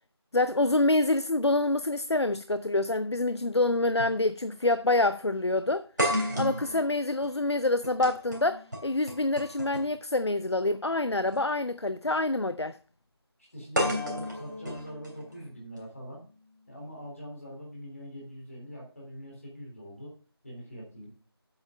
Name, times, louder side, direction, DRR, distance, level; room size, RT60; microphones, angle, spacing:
voice 1, 0.3-5.8 6.4-12.8, left 2 dB, 85° left, 0.6 m, -26 dB
sound 1, 2.8-2.9 4.0-4.2 4.5-4.6 6.0-10.0 11.2-11.4 13.8-15.8, equal, 45° right, 3.0 m, -33 dB
voice 2, 6.3-6.6 13.5-16.2 16.7-20.2 20.4-21.1, equal, 30° left, 3.3 m, -42 dB
8.4 x 6.6 x 5.7 m
figure-of-eight pair, 175°, 14 cm